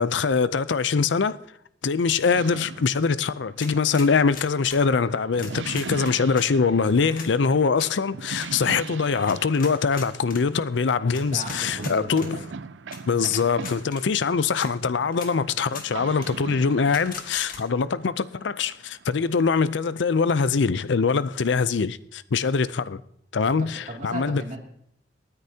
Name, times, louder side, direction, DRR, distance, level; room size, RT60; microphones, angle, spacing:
voice 1, 0.0-1.4 1.8-12.4 13.1-23.0 23.3-24.4, left 5 dB, 75° left, 0.5 m, -23 dB
sound 1, 2.3-20.0, right 4 dB, 75° right, 0.5 m, -40 dB
sound 2, 3.6-4.8 5.3-6.5 7.1-7.3 7.7-7.9 8.3-8.5 9.3-10.4 11.1-12.3 12.9-13.0 13.2-14.0 14.6-14.7 15.1-15.3 15.7-15.9 16.2-16.3 16.9-17.6, left 5 dB, 50° left, 1.8 m, -40 dB
voice 2, 11.0-12.5 23.6-24.6, right 1 dB, 45° right, 2.6 m, -37 dB
27.5 x 9.7 x 2.8 m
head